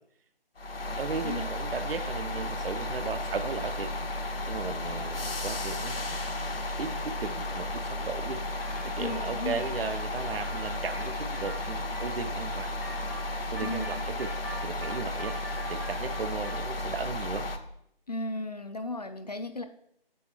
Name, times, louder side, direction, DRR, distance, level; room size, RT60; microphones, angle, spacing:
sound 1, 0.6-17.6, left 1 dB, 70° left, 0.9 m, -34 dB
voice 1, 1.0-3.9 4.5-6.0 6.3-6.4 6.8-8.4 8.8-12.7 13.5-14.3 14.6-15.4 15.7-17.5, right 5 dB, 70° right, 10 dB, 0.5 m, -36 dB
sound 2, 8.6-16.7, equal, 20° right, 0.4 m, -45 dB
voice 2, 9.0-9.6 13.6-14.0 18.1-19.6, left 2 dB, 45° left, 8 dB, 0.4 m, -35 dB
6.2 x 5.3 x 3.4 m, 0.71 s
figure-of-eight pair, 150°, 30 cm